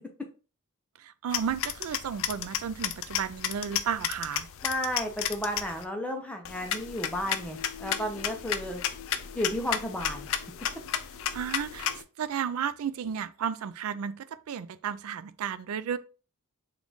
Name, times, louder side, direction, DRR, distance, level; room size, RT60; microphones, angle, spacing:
voice 1, 1.0-4.5 11.3-16.0, right 7 dB, 70° right, 0.3 m, -33 dB
sound 1, 1.3-5.8 6.5-12.0, left 9 dB, 65° left, 0.4 m, -33 dB
voice 2, 4.6-8.8 9.3-10.3, equal, 5° left, 0.5 m, -33 dB
3.6 x 2.4 x 3.8 m
head